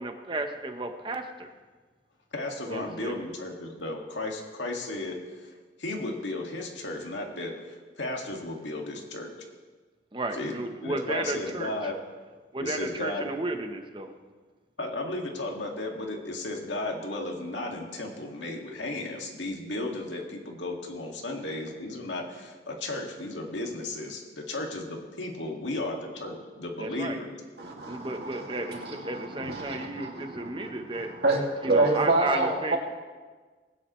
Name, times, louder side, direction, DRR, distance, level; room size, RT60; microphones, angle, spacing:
voice 1, 0.0-1.5 2.7-3.3 10.1-11.9 12.5-14.1 26.8-27.2 27.9-31.1 31.6-32.8, right 2 dB, 25° right, 5 dB, 0.9 m, -33 dB
voice 2, 2.3-5.5 5.8-9.3 10.3-10.5 10.8-11.9 12.6-13.3 14.8-27.3, left 2 dB, 90° left, 1 dB, 2.1 m, -34 dB
voice 3, 27.6-32.8, right 2 dB, 65° right, -1 dB, 2.3 m, -28 dB
20.0 x 9.9 x 3.2 m, 1.4 s
head